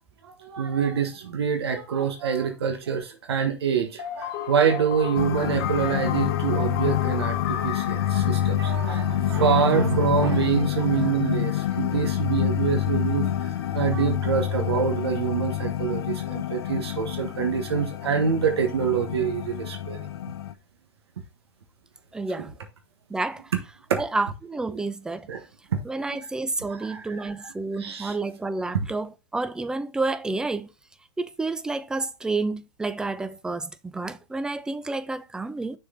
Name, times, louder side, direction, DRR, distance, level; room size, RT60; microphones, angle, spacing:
voice 1, 0.2-13.3 13.7-20.0 22.4-22.5 23.9-24.0 25.3-25.4 25.7-25.8 26.7-27.5 27.8-28.2 28.7-28.9, right 7 dB, 75° right, 1.4 m, -26 dB
sound 1, 4.0-9.8, left 10 dB, 45° left, 1.5 m, -34 dB
sound 2, 5.2-20.5, left 11 dB, 65° left, 0.9 m, -27 dB
voice 2, 22.1-22.5 23.1-23.4 24.0-25.3 25.8-30.7 31.2-35.8, right 3 dB, 5° right, 0.4 m, -30 dB
6.5 x 4.4 x 3.8 m
hypercardioid pair, 120°, 14 cm